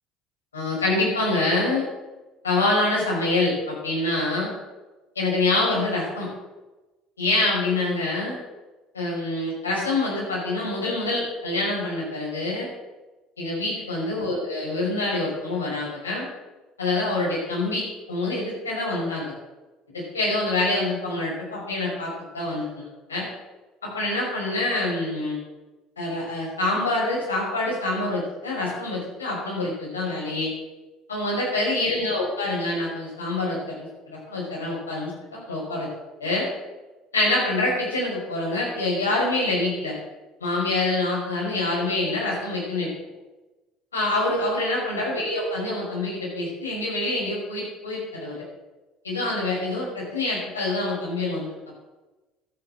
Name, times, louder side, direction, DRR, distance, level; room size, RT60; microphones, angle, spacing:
voice 1, 0.5-1.8 2.4-4.5 5.2-6.3 7.2-8.4 8.9-12.7 13.4-16.3 16.8-19.3 19.9-23.3 23.8-25.4 26.0-30.5 31.1-35.9 36.2-36.4 37.1-39.9 40.4-42.9 43.9-48.4 49.0-51.5, left 2 dB, 85° left, -4 dB, 5.8 m, -26 dB
13.0 x 10.0 x 6.6 m, 1.1 s
figure-of-eight pair, 60°, 0 cm